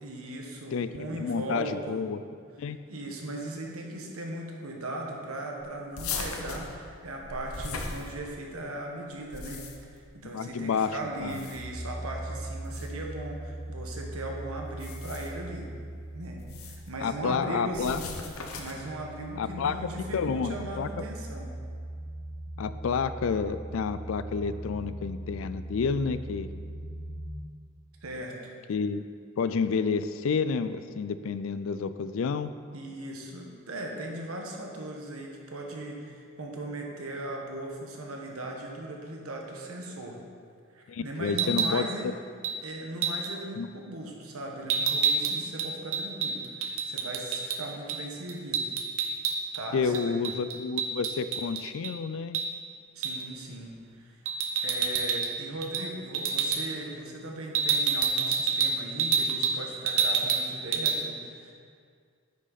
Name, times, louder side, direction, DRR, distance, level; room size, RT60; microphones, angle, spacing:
voice 1, 0.0-2.0 2.9-15.7 16.1-18.1 18.6-21.6 28.0-28.4 32.7-40.2 40.7-42.1 42.6-48.7 49.5-50.1 52.9-54.2 54.6-61.5, right 1 dB, 90° right, 0 dB, 1.3 m, -38 dB
voice 2, 1.2-2.2 2.6-2.8 10.3-11.5 17.0-18.0 19.4-19.7 20.1-20.9 22.6-26.5 28.7-29.0 29.4-32.5 40.9-42.1 43.6-43.7 49.7-52.4, left 5 dB, 65° left, 12 dB, 0.4 m, -30 dB
sound 1, 6.0-8.6 9.1-10.0 11.1-11.8 12.6-12.9 14.7-15.4 16.4-16.9 17.7-18.9, left 4 dB, 85° left, 0.9 m, -38 dB
sound 2, 11.5-27.3, right 1 dB, 25° left, 2.2 m, -40 dB
sound 3, 41.3-41.8 42.4-42.6 43.0-43.3 44.7-47.6 47.9-48.0 48.3-49.6 49.9-51.9 52.3-52.5 53.0-53.3 54.3-55.3 55.6-55.9 56.1-56.6 57.5-59.6 59.9-60.5 60.7-61.0, right 6 dB, 70° right, 0.7 m, -27 dB
9.2 x 6.4 x 4.1 m, 2.1 s
head